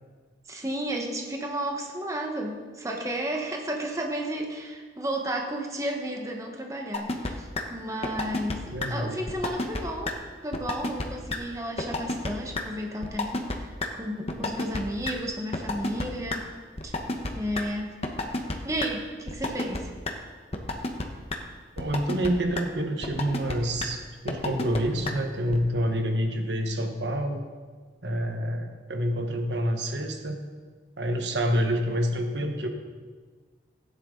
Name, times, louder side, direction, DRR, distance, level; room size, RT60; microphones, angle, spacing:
voice 1, 0.5-10.1 10.4-16.4 16.8-16.9 17.3-18.0 18.6-19.9, right 1 dB, 20° right, 2 dB, 1.2 m, -33 dB
sound 1, 6.9-7.3 7.6-7.7 8.0-8.5 8.8-8.9 9.3-9.8 10.1-10.2 10.5-11.0 11.3-11.4 11.8-12.3 12.5-12.6 13.0-13.6 13.8-13.9 14.3-14.8 15.0-15.1 15.5-16.4 16.8-17.6 18.0-18.5 18.8-18.9 19.3-19.8 20.1-20.2 20.5-21.0 21.3-21.4 21.8-22.3 22.6-22.7 23.0-23.5 23.8-23.9 24.3-24.8 25.1-25.2 25.5-25.6, left 2 dB, 35° left, 1.1 m, -29 dB
voice 2, 8.7-9.2 21.8-27.4 28.0-30.4 31.0-32.7, equal, 75° right, 4 dB, 1.3 m, -27 dB
16.0 x 9.8 x 3.9 m, 1.5 s
head